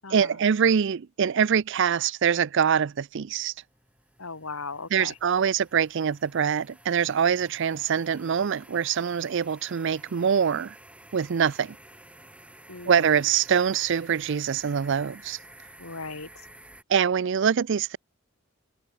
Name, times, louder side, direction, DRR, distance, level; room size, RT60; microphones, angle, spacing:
voice 1, 0.1-3.5 4.9-10.8 11.1-11.8 12.9-15.4 16.9-18.0, right 7 dB, 60° right, 0.4 m, -24 dB
sound 1, 3.1-16.8, right 1 dB, 5° right, 6.5 m, -51 dB
voice 2, 4.2-5.1 12.7-13.0 15.8-16.3, left 4 dB, 90° left, 2.6 m, -37 dB
head